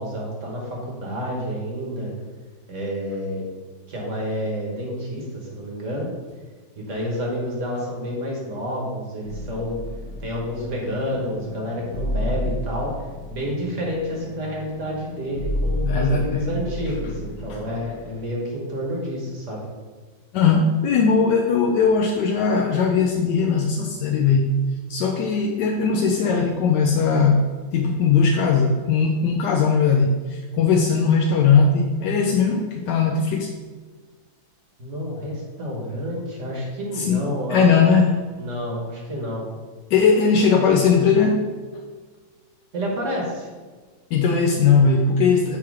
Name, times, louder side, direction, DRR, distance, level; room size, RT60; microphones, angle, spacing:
voice 1, 0.0-2.1 2.7-3.5 3.9-6.1 6.8-9.8 10.2-12.9 13.3-19.7 34.8-37.6 38.4-39.5 42.7-43.5, equal, 40° right, -2 dB, 1.5 m, -29 dB
sound 1, 9.2-18.2, left 1 dB, 55° left, 0.8 m, -31 dB
voice 2, 15.8-16.4 17.5-17.6 20.3-24.6 24.9-27.5 27.7-33.5 36.9-37.2 37.5-38.1 39.9-41.5 44.1-45.6, left 5 dB, 75° left, 0 dB, 1.0 m, -19 dB
7.1 x 3.1 x 4.8 m, 1.4 s
omnidirectional pair, 2.2 m